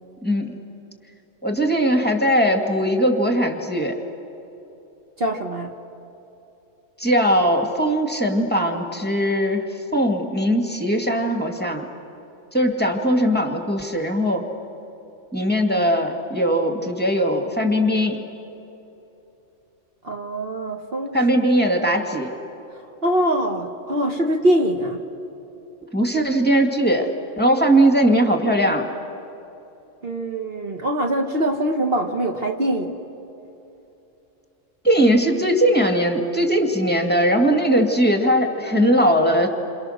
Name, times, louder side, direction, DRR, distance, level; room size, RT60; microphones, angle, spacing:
voice 1, 1.4-4.0 7.0-9.6 9.9-11.9 12.5-14.4 15.3-18.2 21.1-22.3 25.9-27.1 27.4-28.9 34.8-39.5, equal, 10° left, 3 dB, 2.1 m, -19 dB
voice 2, 5.2-5.7 20.0-21.2 23.0-25.0 30.0-33.0, right 1 dB, 50° right, 3 dB, 1.6 m, -23 dB
28.5 x 27.5 x 6.6 m, 2.9 s
omnidirectional pair, 1.3 m